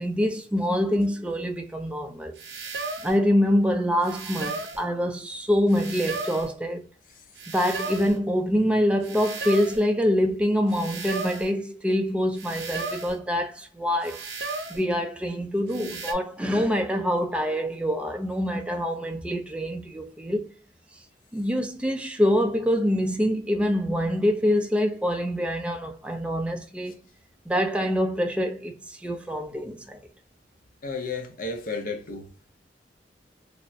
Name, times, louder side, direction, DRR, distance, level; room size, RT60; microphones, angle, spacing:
voice 1, 0.0-2.3 3.0-6.8 7.5-14.2 14.7-20.5 21.3-27.0 27.5-30.0, equal, 5° right, 0.3 m, -25 dB
sound 1, 2.4-3.2 4.0-4.9 5.7-6.5 7.4-8.2 9.0-9.9 10.7-11.5 12.4-13.2 14.0-14.9 15.7-16.1, right 3 dB, 70° right, 0.5 m, -35 dB
voice 2, 30.8-32.2, left 3 dB, 50° left, 0.6 m, -32 dB
3.3 x 2.0 x 2.6 m
head